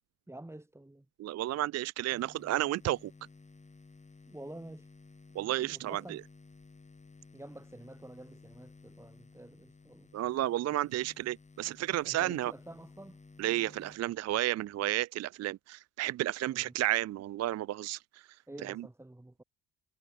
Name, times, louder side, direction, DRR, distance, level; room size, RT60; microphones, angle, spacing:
voice 1, 0.3-1.1 4.3-4.9 5.7-6.2 7.3-10.1 12.0-13.2 16.5-16.7 18.5-19.4, right 1 dB, 5° right, 6.3 m, -48 dB
voice 2, 1.2-3.1 5.4-6.2 10.1-12.5 13.4-18.2 18.6-18.8, right 14 dB, 50° right, 0.4 m, -32 dB
sound 1, 2.1-15.1, left 3 dB, 20° left, 4.2 m, -56 dB
cardioid pair, 130°, 35 cm